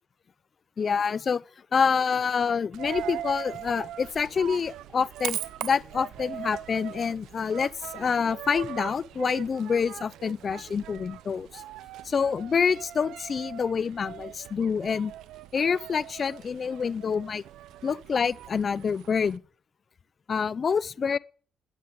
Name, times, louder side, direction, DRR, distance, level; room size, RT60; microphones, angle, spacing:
voice 1, 0.8-1.4 1.7-11.6 12.1-15.1 15.5-17.4 17.8-19.4 20.3-21.2, left 6 dB, 45° left, 0.6 m, -27 dB
Coin (dropping), 2.7-19.4, right 13 dB, 85° right, 0.7 m, -41 dB
13.0 x 10.5 x 8.0 m
cardioid pair, 90°, 0 cm